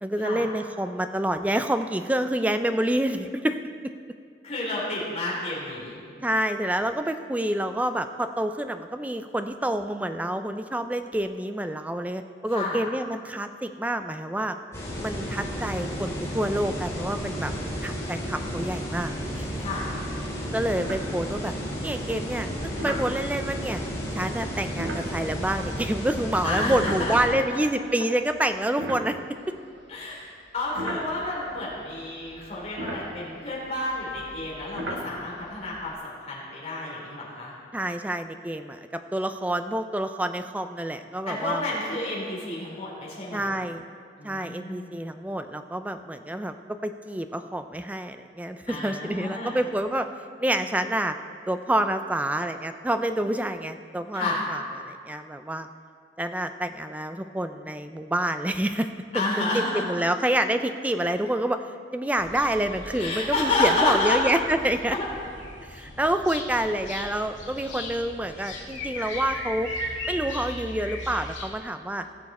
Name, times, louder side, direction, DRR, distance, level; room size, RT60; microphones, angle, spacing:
voice 1, 0.0-3.6 6.2-14.6 15.0-17.5 17.8-19.5 20.5-21.5 21.8-22.5 22.8-23.8 24.1-29.2 29.5-29.6 37.7-41.6 43.3-43.8 44.2-46.5 46.8-50.1 50.4-51.1 51.5-55.7 56.2-58.9 59.4-61.6 61.9-65.0 65.7-69.7 70.1-72.1, right 1 dB, 10° right, 8 dB, 0.4 m, -28 dB
voice 2, 4.4-6.3 12.5-12.8 19.6-19.9 26.4-27.1 29.9-37.5 41.3-43.6 44.2-44.9 48.7-49.5 54.1-54.4 59.1-59.8 63.0-64.2 64.9-65.1 66.8-66.9, left 2 dB, 35° left, -5 dB, 3.2 m, -30 dB
sound 1, 14.7-27.3, equal, 15° left, 2.3 m, -32 dB
sound 2, 20.8-21.6 22.8-23.1 24.7-27.6 28.2-29.9 30.5-35.9, equal, 70° right, 1.3 m, -37 dB
sound 3, 62.2-71.5, left 1 dB, 80° left, 2.0 m, -38 dB
17.5 x 6.9 x 4.2 m, 2.2 s
head